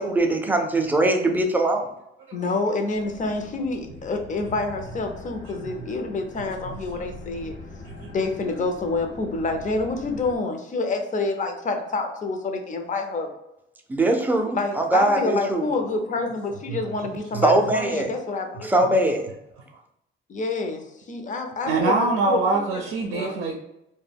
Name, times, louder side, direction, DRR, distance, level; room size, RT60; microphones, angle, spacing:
voice 1, 0.0-1.9 13.9-15.6 17.4-18.1 18.6-19.3, right 1 dB, 10° right, 3 dB, 0.5 m, -21 dB
voice 2, 2.3-7.5 8.0-13.3 14.5-18.9 20.3-22.4 22.7-22.8 23.1-23.3, left 3 dB, 40° left, 4 dB, 0.6 m, -28 dB
sound 1, 2.9-10.4, left 3 dB, 75° left, 0.7 m, -42 dB
voice 3, 5.5-5.9 6.6-7.2 7.8-8.1 16.7-17.4 21.7-23.5, right 3 dB, 90° right, -1 dB, 0.5 m, -26 dB
2.2 x 2.1 x 3.4 m, 0.86 s
cardioid pair, 90°, 20 cm